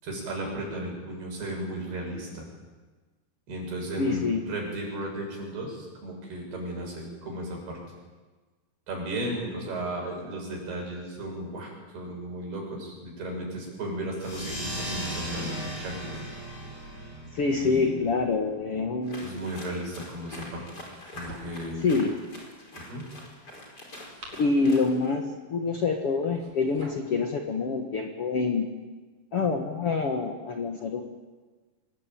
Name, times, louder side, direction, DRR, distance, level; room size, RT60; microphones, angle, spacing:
voice 1, 0.0-2.5 3.5-7.8 8.9-16.2 17.6-17.9 19.2-20.6 21.1-21.9 22.7-23.0, right 1 dB, 75° right, 0 dB, 9.0 m, -35 dB
voice 2, 4.0-4.4 17.3-19.4 21.8-22.2 24.4-25.3 25.5-28.7 29.3-31.0, left 4 dB, 50° left, 3 dB, 1.9 m, -26 dB
sound 1, 14.2-19.3, right 1 dB, 65° left, 9.0 m, -37 dB
sound 2, 19.0-25.1, left 1 dB, 25° left, 5.4 m, -44 dB
sound 3, 20.8-21.9 23.8-25.0 26.2-27.1, right 2 dB, 45° right, 5.0 m, -48 dB
25.0 x 20.5 x 9.2 m, 1.3 s
omnidirectional pair, 4.6 m